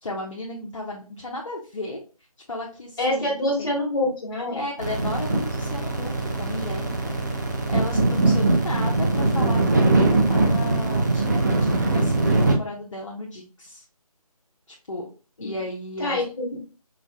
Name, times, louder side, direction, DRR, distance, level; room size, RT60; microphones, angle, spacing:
voice 1, 0.0-2.0 2.5-3.7 4.5-7.2 7.7-13.8 14.9-15.1 15.4-16.2, left 1 dB, 55° left, -2 dB, 0.8 m, -34 dB
voice 2, 3.0-4.6 15.4-15.5 16.0-16.7, left 1 dB, 35° left, -4 dB, 1.7 m, -26 dB
sound 1, 4.8-12.5, right 2 dB, 30° right, 0.6 m, -21 dB
5.4 x 2.5 x 2.2 m, 0.35 s
figure-of-eight pair, 160°, 20 cm